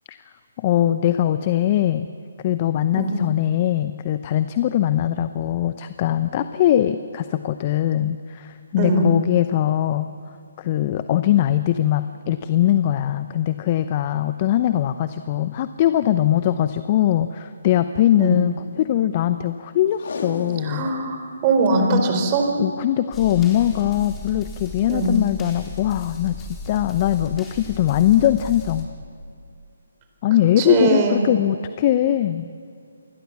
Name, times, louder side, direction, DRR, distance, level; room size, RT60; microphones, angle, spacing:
voice 1, 0.6-2.1 2.4-10.1 10.6-20.9 22.6-28.9 30.2-32.5, left 12 dB, 35° left, 12 dB, 0.7 m, -21 dB
voice 2, 8.8-9.1 18.2-18.4 20.6-22.5 24.9-25.1 30.6-31.3, right 3 dB, 25° right, 4 dB, 4.2 m, -21 dB
Packing tape duct tape, 19.9-21.0 21.4-21.5 21.7-21.8 22.3-22.6 23.6-23.9 24.5-24.6, left 3 dB, 55° left, 3.2 m, -34 dB
sound 1, 23.1-28.9, left 4 dB, 15° left, 3.9 m, -36 dB
28.0 x 21.0 x 7.2 m, 2.4 s
figure-of-eight pair, 140°, 0 cm